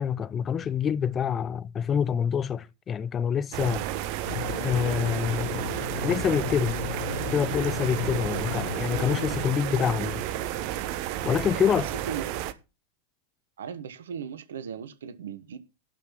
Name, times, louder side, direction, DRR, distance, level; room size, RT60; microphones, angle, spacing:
voice 1, 0.0-3.9 4.6-6.8 7.3-10.2 11.2-11.9, left 8 dB, 25° left, 0.6 m, -26 dB
sound 1, 3.5-12.5, right 12 dB, 45° right, 0.9 m, -32 dB
sound 2, 4.2-9.5, left 9 dB, 60° left, 1.0 m, -35 dB
voice 2, 11.5-12.2 13.6-15.6, right 8 dB, 65° right, 1.2 m, -37 dB
11.5 x 5.7 x 6.1 m
figure-of-eight pair, 90°, 0 cm